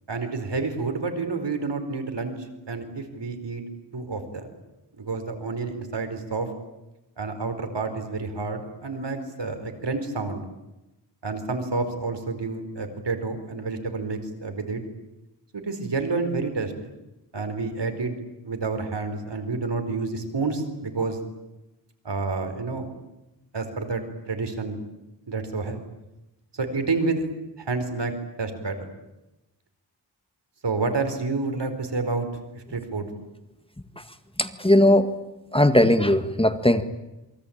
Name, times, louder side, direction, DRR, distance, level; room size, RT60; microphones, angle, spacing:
voice 1, 0.1-2.4 2.7-3.6 3.9-4.5 5.0-6.5 7.2-10.4 11.2-14.8 15.5-16.9 17.3-18.1 18.4-21.2 22.0-22.9 23.5-24.8 25.3-25.8 26.5-27.3 27.6-28.1 28.4-28.9 30.6-32.3 32.5-33.1, right 3 dB, 70° right, 7 dB, 4.7 m, -29 dB
voice 2, 34.4-35.1 35.5-36.8, left 1 dB, 10° left, 9 dB, 1.7 m, -18 dB
28.0 x 23.5 x 8.9 m, 0.97 s
wide cardioid pair, 70°, 44 cm